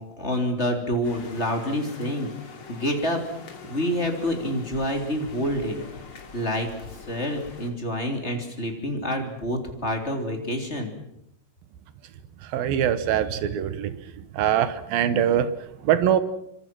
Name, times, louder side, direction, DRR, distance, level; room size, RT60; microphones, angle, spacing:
voice 1, 0.2-2.3 2.7-3.2 3.7-5.8 6.3-6.7 7.1-10.9, equal, 20° left, 4 dB, 3.3 m, -27 dB
sound 1, 1.0-7.7, left 4 dB, 40° left, 3.3 m, -43 dB
voice 2, 12.4-16.2, right 9 dB, 75° right, 13 dB, 2.8 m, -23 dB
27.0 x 25.5 x 6.2 m, 0.81 s
omnidirectional pair, 4.3 m